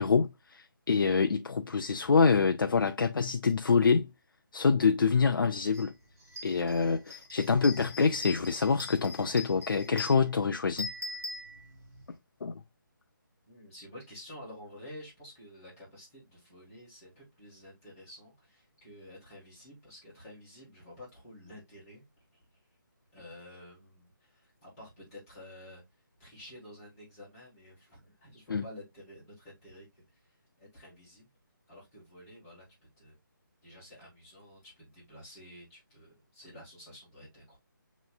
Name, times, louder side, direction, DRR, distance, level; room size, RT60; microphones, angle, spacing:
voice 1, 0.0-4.1 4.5-5.9 6.4-10.9 12.4-12.6 28.5-28.6, left 5 dB, 80° left, 0.5 m, -26 dB
sound 1, 5.7-5.9 6.2-12.1, left 3 dB, 45° right, 1.6 m, -42 dB
voice 2, 13.5-22.0 23.1-25.8 26.2-30.2 30.6-31.3 31.7-32.6 33.0-33.1 33.6-37.6, left 1 dB, 10° left, 1.5 m, -50 dB
6.4 x 3.1 x 2.2 m
hypercardioid pair, 180°, 11 cm